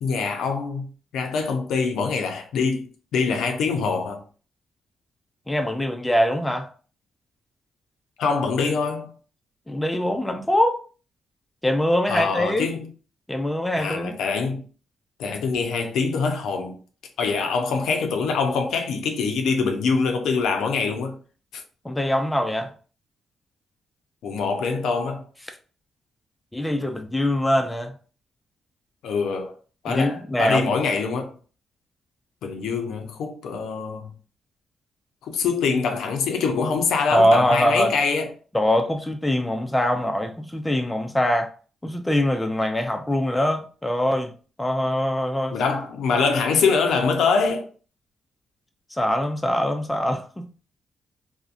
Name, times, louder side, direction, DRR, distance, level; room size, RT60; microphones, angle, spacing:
voice 1, 0.0-4.2 8.2-9.1 12.1-12.9 13.8-14.6 15.2-16.8 17.2-21.2 21.5-21.6 24.2-25.2 29.0-29.5 29.8-31.3 32.4-34.1 35.2-38.3 45.5-47.7, left 5 dB, 90° left, 0.4 m, -24 dB
voice 2, 5.5-6.7 9.7-10.8 11.6-12.7 13.3-14.2 21.8-22.7 26.5-28.0 29.9-30.7 37.1-38.0 38.5-41.5 41.8-44.3 44.6-45.6 46.1-46.3 48.9-50.5, left 1 dB, 10° left, 0.4 m, -23 dB
2.7 x 2.1 x 2.4 m
cardioid pair, 105°, 0 cm